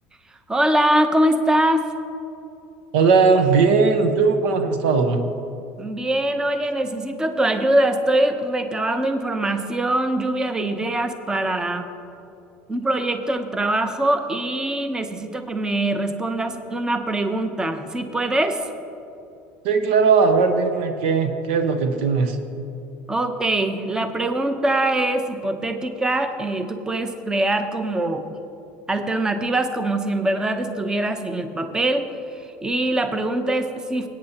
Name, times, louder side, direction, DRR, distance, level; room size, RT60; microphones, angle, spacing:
voice 1, 0.5-1.9 5.8-11.9 12.7-18.6 23.1-28.3 28.9-32.1 32.6-34.1, right 1 dB, 15° right, 7 dB, 0.8 m, -23 dB
voice 2, 2.9-5.2 19.6-22.4, right 5 dB, 80° right, 7 dB, 0.9 m, -18 dB
20.5 x 8.8 x 2.9 m, 2.7 s
supercardioid pair, 100°, 6 cm